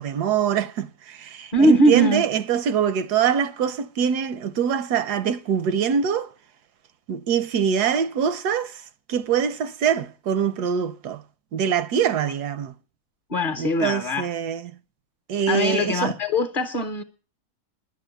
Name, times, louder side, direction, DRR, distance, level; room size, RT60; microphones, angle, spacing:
voice 1, 0.0-6.3 7.1-11.2 11.5-12.8 13.6-14.7 15.3-16.2, right 7 dB, 85° right, 1.3 m, -24 dB
voice 2, 1.5-2.2 13.3-14.3 15.5-17.0, equal, 40° left, 0.9 m, -21 dB
10.5 x 7.3 x 9.1 m
omnidirectional pair, 1.7 m